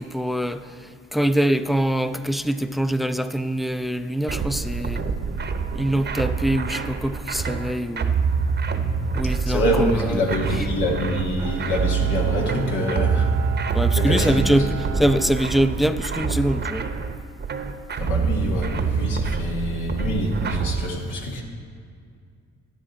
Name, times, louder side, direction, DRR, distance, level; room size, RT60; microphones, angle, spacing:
voice 1, 0.0-5.0 5.7-8.2 9.1-10.7 13.7-16.9, equal, ahead, 0.3 m, -24 dB
sound 1, 4.3-20.9, right 5 dB, 35° right, 0.7 m, -26 dB
voice 2, 9.5-13.3 14.0-14.6 18.0-21.4, equal, 85° left, 1.8 m, -25 dB
Bowed string instrument, 11.4-16.2, right 8 dB, 65° right, 0.8 m, -36 dB
11.5 x 10.0 x 4.2 m
cardioid pair, 90°, 30 cm